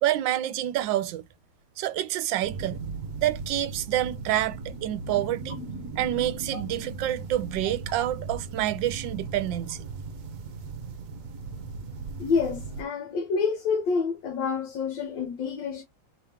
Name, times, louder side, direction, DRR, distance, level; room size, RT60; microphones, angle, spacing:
voice 1, 0.0-1.2 1.8-2.8 3.2-5.6 6.0-9.9, right 13 dB, 75° right, 1.2 m, -28 dB
sound 1, 2.4-12.8, right 4 dB, 55° right, 0.9 m, -37 dB
voice 2, 12.2-15.8, left 5 dB, 70° left, 1.5 m, -28 dB
3.6 x 3.3 x 4.4 m
omnidirectional pair, 2.1 m